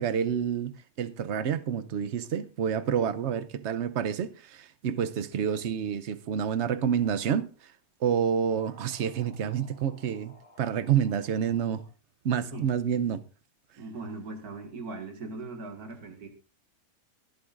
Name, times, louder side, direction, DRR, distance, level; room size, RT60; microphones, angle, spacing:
voice 1, 0.0-7.5 8.0-11.8 12.2-13.2, right 8 dB, 60° right, 0.9 m, -28 dB
sound 1, 7.0-7.4 8.3-11.8, left 1 dB, 60° left, 3.7 m, -57 dB
voice 2, 13.8-16.3, right 3 dB, 85° right, 2.2 m, -39 dB
23.0 x 7.9 x 2.5 m
omnidirectional pair, 1.6 m